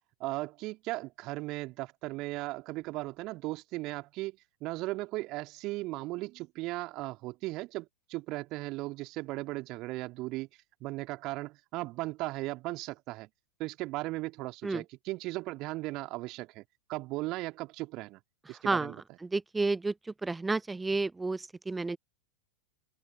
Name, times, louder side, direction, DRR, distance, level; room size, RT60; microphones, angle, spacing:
voice 1, 0.2-10.5 10.8-13.3 13.6-16.6 16.9-18.2 18.5-19.0, right 20 dB, 40° right, 2.8 m, -37 dB
voice 2, 18.5-19.0 19.2-19.9 20.2-22.0, right 3 dB, 10° right, 0.7 m, -31 dB
figure-of-eight pair, 90°, 0 cm